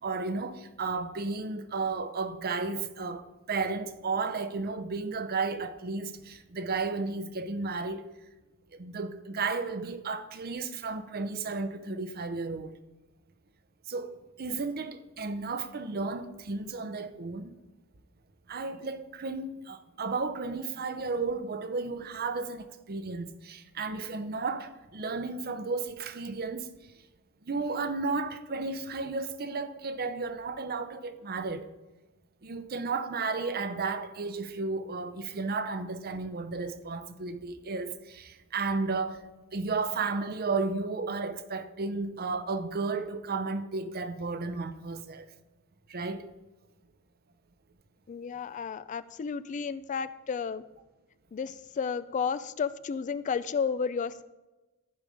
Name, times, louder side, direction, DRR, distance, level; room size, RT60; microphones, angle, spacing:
voice 1, 0.0-8.1 8.7-12.7 13.9-17.5 18.5-26.7 27.5-31.7 32.4-45.3 45.9-46.3, right 4 dB, 45° right, 0.7 m, -33 dB
voice 2, 48.1-50.6 51.3-54.2, left 6 dB, 35° left, 0.3 m, -32 dB
14.0 x 5.3 x 5.0 m
head